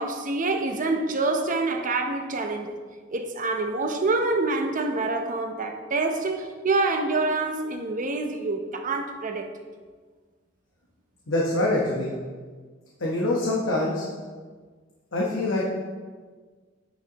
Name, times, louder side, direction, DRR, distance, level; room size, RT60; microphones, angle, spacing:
voice 1, 0.0-2.7 3.1-9.5, right 3 dB, 40° right, 5 dB, 0.7 m, -26 dB
voice 2, 11.3-12.1 13.0-14.0 15.1-15.7, left 2 dB, 75° left, -4 dB, 1.1 m, -24 dB
9.5 x 6.3 x 2.9 m, 1.5 s
head